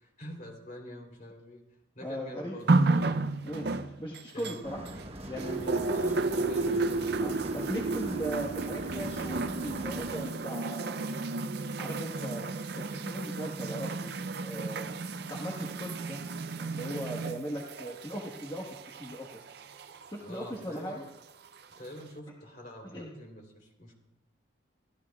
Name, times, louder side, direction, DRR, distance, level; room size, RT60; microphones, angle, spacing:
voice 1, 0.0-1.6 2.0-3.3 4.3-4.6 5.8-7.1 20.2-21.0 21.8-23.9, equal, 45° left, 1 dB, 3.5 m, -46 dB
voice 2, 2.0-2.6 3.4-4.8 5.2-6.0 7.2-11.1 11.8-12.6 12.9-14.1 14.4-14.9 15.3-16.2 16.5-19.3 20.1-21.0 22.8-23.1, equal, 20° left, -3 dB, 1.4 m, -38 dB
sound 1, 2.7-5.0 5.4-20.1 21.0-21.1, right 3 dB, 55° right, 0.5 m, -32 dB
sound 2, 4.6-10.2, right 1 dB, 30° right, 1.0 m, -42 dB
29.0 x 13.5 x 2.4 m, 0.93 s
head